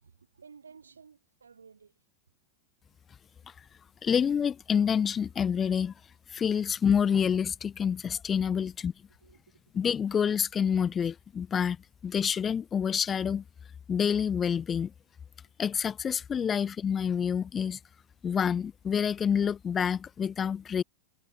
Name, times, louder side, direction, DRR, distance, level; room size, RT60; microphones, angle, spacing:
voice 1, 0.0-1.9 9.2-9.6, right 6 dB, 75° right, 4.2 m, -54 dB
voice 2, 4.0-5.9 6.3-8.9 9.7-11.8 12.0-13.4 13.9-14.9 15.6-17.8 18.2-20.8, left 7 dB, 20° left, 0.4 m, -27 dB
figure-of-eight pair, 90°, 0 cm